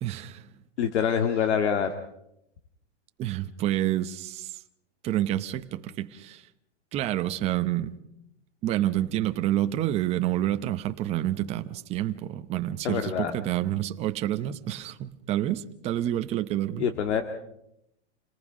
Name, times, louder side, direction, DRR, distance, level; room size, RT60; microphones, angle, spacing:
voice 1, 0.0-0.5 3.2-4.6 5.0-6.5 6.9-7.9 8.6-16.9, right 13 dB, 20° right, 0.8 m, -28 dB
voice 2, 0.8-1.9 12.8-13.3 16.8-17.2, left 8 dB, 75° left, 2.0 m, -25 dB
28.0 x 19.0 x 6.2 m
supercardioid pair, 165°, 35 cm